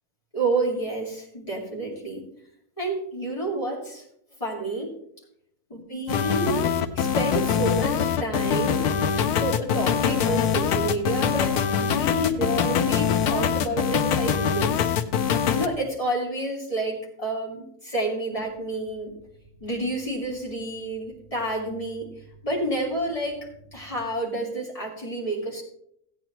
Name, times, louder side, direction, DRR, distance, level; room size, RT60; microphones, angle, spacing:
voice 1, 0.3-2.3 2.8-4.0 4.4-5.0 5.7-8.9 9.4-14.9 15.5-19.2 19.6-25.6, right 2 dB, 20° left, -3 dB, 2.6 m, -29 dB
sound 1, 6.1-15.7, left 7 dB, 85° left, 1.2 m, -23 dB
sound 2, 18.3-24.0, right 3 dB, 45° right, 2.5 m, -54 dB
15.0 x 9.0 x 3.0 m, 0.72 s
omnidirectional pair, 1.6 m